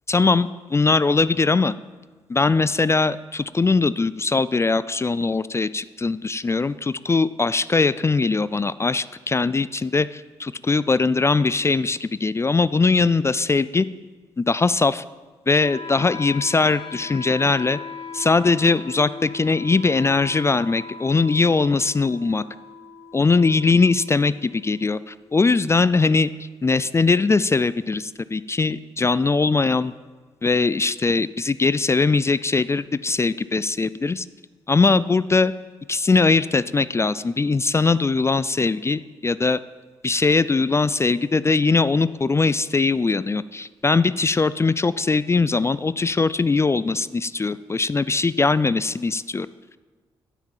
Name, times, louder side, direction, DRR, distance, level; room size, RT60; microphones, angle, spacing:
voice 1, 0.1-1.7 2.3-13.9 14.4-15.0 15.5-17.8 18.1-22.4 23.1-26.3 26.6-29.9 30.4-34.3 34.7-35.5 35.9-39.6 40.0-49.5, left 4 dB, 25° left, 17 dB, 0.3 m, -21 dB
Wind instrument woodwind instrument, 15.6-25.6, left 5 dB, 55° left, 1.3 m, -39 dB
9.9 x 5.9 x 7.2 m, 1.4 s
hypercardioid pair, 45°, 12 cm